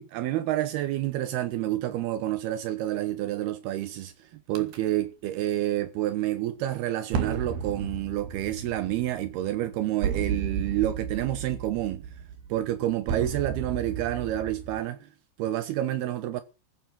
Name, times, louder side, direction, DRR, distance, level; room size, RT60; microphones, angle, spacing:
voice 1, 0.0-12.0 12.5-15.1 15.4-16.4, right 13 dB, 85° right, 2.3 m, -29 dB
sound 1, 4.6-4.8 7.1-14.8, right 7 dB, 55° right, 3.9 m, -33 dB
15.5 x 11.5 x 7.7 m
omnidirectional pair, 5.9 m